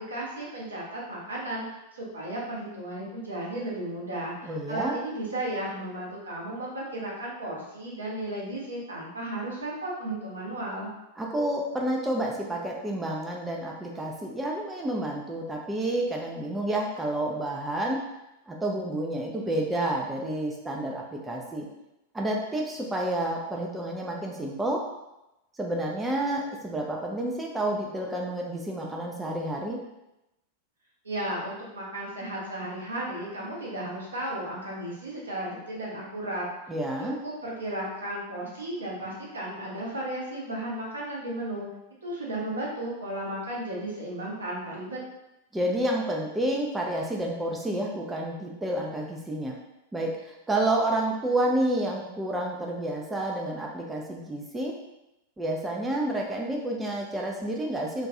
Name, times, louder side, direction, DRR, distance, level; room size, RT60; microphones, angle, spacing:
voice 1, 0.0-10.9 31.0-36.5 37.0-41.7 42.0-45.0, right 1 dB, 75° right, -4 dB, 0.7 m, -34 dB
voice 2, 4.4-5.0 11.2-18.0 18.5-21.7 22.1-24.8 25.6-29.8 36.7-37.2 45.5-49.6 49.9-54.8 55.4-58.1, right 1 dB, 10° right, -1 dB, 0.3 m, -29 dB
2.3 x 2.2 x 2.7 m, 0.92 s
figure-of-eight pair, 90°, 0 cm